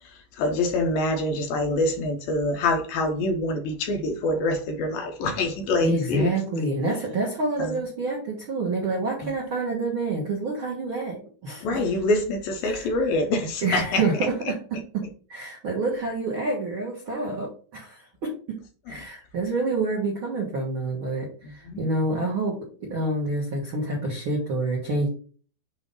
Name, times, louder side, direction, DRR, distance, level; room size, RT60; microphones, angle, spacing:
voice 1, 0.0-6.3 7.6-7.8 9.2-9.3 11.6-14.0 18.9-19.0 21.4-21.8, left 2 dB, 75° left, 4 dB, 2.4 m, -26 dB
voice 2, 5.8-11.6 12.6-12.9 13.6-15.0 15.3-18.6 18.9-25.1, right 2 dB, 60° right, -2 dB, 1.3 m, -28 dB
8.2 x 2.8 x 5.3 m, 0.40 s
omnidirectional pair, 4.8 m